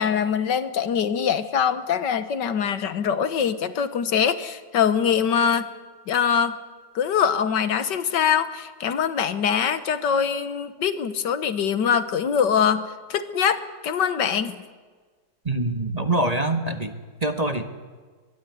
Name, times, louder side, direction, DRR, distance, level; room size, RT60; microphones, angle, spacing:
voice 1, 0.0-5.7 6.1-6.6 7.0-14.6, left 7 dB, 85° left, 12 dB, 1.9 m, -23 dB
voice 2, 15.4-17.7, right 2 dB, 25° right, 7 dB, 1.5 m, -25 dB
23.0 x 22.0 x 9.6 m, 1.5 s
omnidirectional pair, 1.8 m